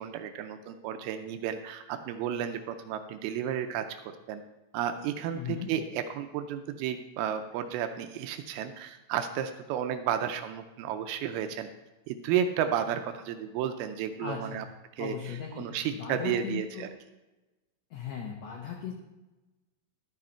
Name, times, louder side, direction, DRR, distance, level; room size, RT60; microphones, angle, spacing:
voice 1, 0.0-4.4 4.7-11.7 12.1-14.7 15.0-16.9, right 9 dB, 85° right, 8 dB, 2.5 m, -32 dB
voice 2, 5.3-5.7 14.2-14.6 15.0-16.9 17.9-18.9, left 7 dB, 85° left, 1 dB, 1.5 m, -37 dB
12.0 x 6.2 x 4.4 m, 1.1 s
omnidirectional pair, 4.4 m